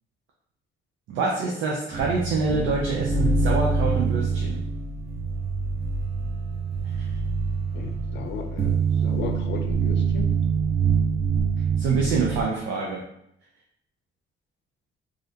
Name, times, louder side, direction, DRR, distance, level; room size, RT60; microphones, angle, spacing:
voice 1, 1.1-4.6 7.0-7.1 11.8-13.0, right 4 dB, 85° right, -1 dB, 0.5 m, -26 dB
sound 1, 1.9-12.4, right 5 dB, 30° right, 0.6 m, -25 dB
voice 2, 7.7-8.8 9.0-10.3, left 5 dB, 65° left, 5 dB, 0.5 m, -35 dB
3.3 x 2.4 x 2.7 m, 0.74 s
cardioid pair, 90°, 20 cm